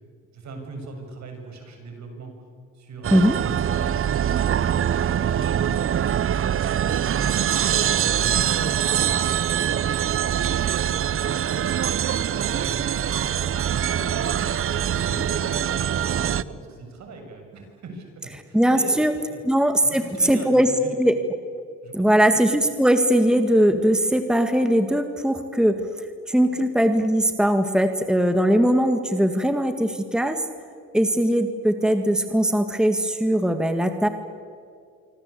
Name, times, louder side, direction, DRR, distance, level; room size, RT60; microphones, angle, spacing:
voice 1, 0.3-2.3 2.7-4.1 4.4-5.8 6.2-7.5 7.9-9.8 10.3-14.4 14.7-19.0 19.3-19.4 19.8-20.9 21.8-22.4 26.5-26.6, right 3 dB, 65° right, 4 dB, 7.1 m, -40 dB
sound 1, 3.0-16.4, right 9 dB, 45° right, 0.7 m, -23 dB
voice 2, 18.5-19.1 19.5-20.0 20.3-21.1 21.9-25.8 26.3-30.4 30.9-34.1, equal, ahead, 7 dB, 1.9 m, -20 dB
26.5 x 25.0 x 8.4 m, 2.2 s
cardioid pair, 90°, 30 cm